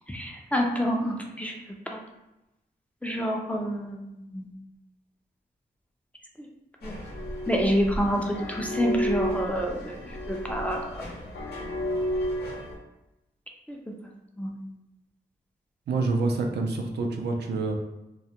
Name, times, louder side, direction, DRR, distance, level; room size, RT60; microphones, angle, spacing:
voice 1, 0.1-1.5 1.9-2.0 3.0-4.5 6.8-7.0 7.5-11.0 13.7-13.9 14.4-14.7, equal, 10° left, 0 dB, 0.3 m, -28 dB
sound 1, 6.8-12.8, equal, 75° left, 0.6 m, -32 dB
voice 2, 15.9-17.8, right 3 dB, 80° right, 2 dB, 0.4 m, -27 dB
2.2 x 2.0 x 2.8 m, 0.94 s
wide cardioid pair, 90°, 17 cm